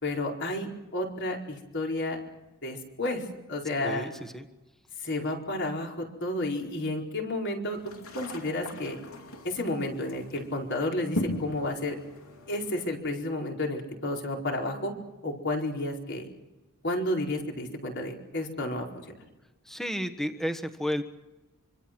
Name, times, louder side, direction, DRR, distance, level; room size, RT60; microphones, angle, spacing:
voice 1, 0.0-2.2 2.6-4.1 5.0-7.8 8.1-9.0 9.4-12.0 12.5-14.9 15.2-16.3 16.8-19.1, left 1 dB, 55° left, 1 dB, 4.7 m, -31 dB
voice 2, 3.8-4.5 19.6-21.1, equal, ahead, 7 dB, 1.4 m, -32 dB
sound 1, 7.7-12.9, left 1 dB, 70° left, 3.8 m, -39 dB
26.5 x 25.5 x 6.1 m, 1.0 s
head